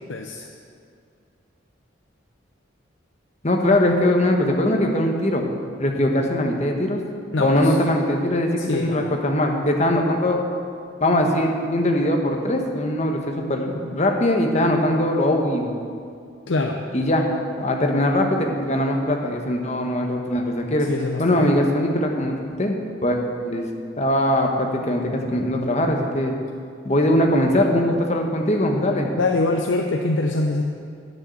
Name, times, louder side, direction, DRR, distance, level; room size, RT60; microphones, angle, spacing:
voice 1, 0.1-0.5 7.3-7.8 8.6-9.2 16.5-16.8 20.9-21.6 29.1-30.7, left 2 dB, 75° left, 3 dB, 0.6 m, -24 dB
voice 2, 3.4-5.4 5.8-7.0 7.4-10.4 11.0-15.7 16.9-20.9 21.2-22.7 23.0-23.2 23.4-23.7 24.0-26.3 26.8-29.1, left 1 dB, 35° left, 3 dB, 1.1 m, -21 dB
9.7 x 6.4 x 8.1 m, 2.3 s
head